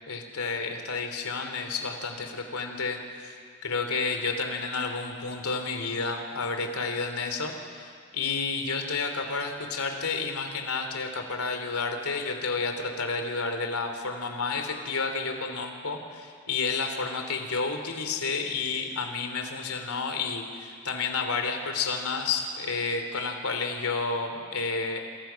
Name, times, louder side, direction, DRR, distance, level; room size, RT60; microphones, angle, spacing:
voice 1, 0.1-25.0, left 4 dB, 80° left, 5 dB, 3.0 m, -31 dB
28.0 x 28.0 x 5.8 m, 2.2 s
head